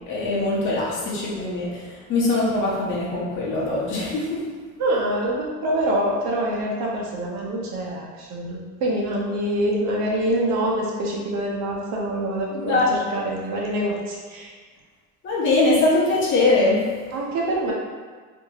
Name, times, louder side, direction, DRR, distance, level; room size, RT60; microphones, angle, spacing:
voice 1, 0.1-4.5 12.5-12.9 15.2-17.1, left 2 dB, 40° left, -7 dB, 0.9 m, -22 dB
voice 2, 4.8-12.8 13.1-14.5 17.1-17.7, right 1 dB, 60° right, -2 dB, 0.8 m, -25 dB
2.8 x 2.7 x 2.8 m, 1.5 s
cardioid pair, 125°, 31 cm